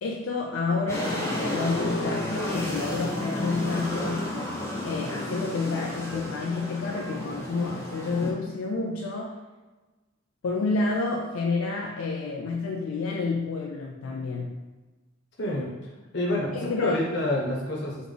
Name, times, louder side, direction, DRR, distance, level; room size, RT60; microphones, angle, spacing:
voice 1, 0.0-4.3 4.8-9.4 10.4-14.6 16.5-17.0, left 3 dB, 85° left, 0 dB, 0.4 m, -29 dB
sound 1, 0.9-8.3, left 1 dB, 15° left, 0.7 m, -32 dB
voice 2, 15.4-15.7 16.1-18.1, left 1 dB, 55° left, -4 dB, 1.0 m, -28 dB
4.0 x 3.0 x 3.3 m, 1.2 s
head